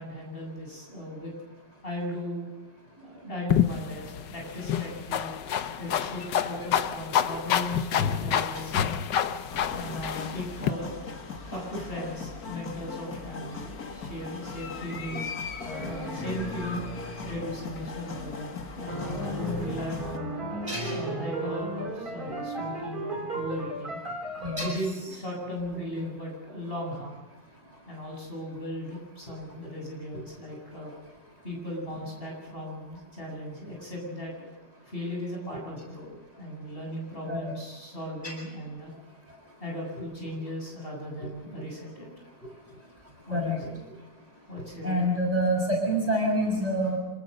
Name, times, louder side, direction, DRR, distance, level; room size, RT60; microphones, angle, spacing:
voice 1, 0.0-1.3 1.8-2.5 3.0-5.3 5.8-9.0 9.7-11.0 11.5-16.9 17.2-20.4 20.8-24.0 24.6-27.2 27.9-30.9 31.4-34.5 34.8-38.9 39.6-42.1 42.4-42.8 43.3-43.8 44.5-45.1, left 1 dB, 30° left, -1 dB, 8.2 m, -37 dB
sound 1, 3.5-10.7, left 9 dB, 75° left, 1.6 m, -28 dB
sound 2, 9.5-20.2, left 4 dB, 55° left, 2.4 m, -39 dB
sound 3, 15.6-17.6 18.9-24.7, right 1 dB, 55° right, 4.6 m, -35 dB
voice 2, 20.7-21.0 24.4-24.7 26.0-26.1 37.3-37.5 38.2-38.3 43.3-43.6 44.8-47.0, equal, 20° right, -1 dB, 7.0 m, -27 dB
27.0 x 20.0 x 6.6 m, 1.1 s
omnidirectional pair, 1.9 m